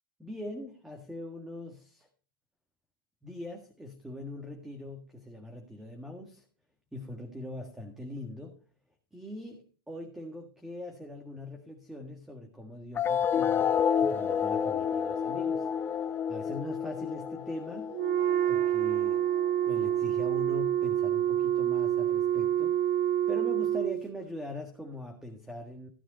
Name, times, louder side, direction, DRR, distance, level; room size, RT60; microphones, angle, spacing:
voice 1, 0.2-2.1 3.2-6.4 6.9-8.6 9.1-15.7 16.3-17.9 18.5-19.3 19.7-22.9 23.3-25.9, left 1 dB, 5° right, 3 dB, 1.8 m, -42 dB
sound 1, 12.9-19.9, left 7 dB, 20° left, 0.7 m, -30 dB
Wind instrument woodwind instrument, 17.9-24.0, right 11 dB, 45° right, 1.3 m, -27 dB
15.5 x 7.9 x 4.1 m, 0.40 s
hypercardioid pair, 130°, 12 cm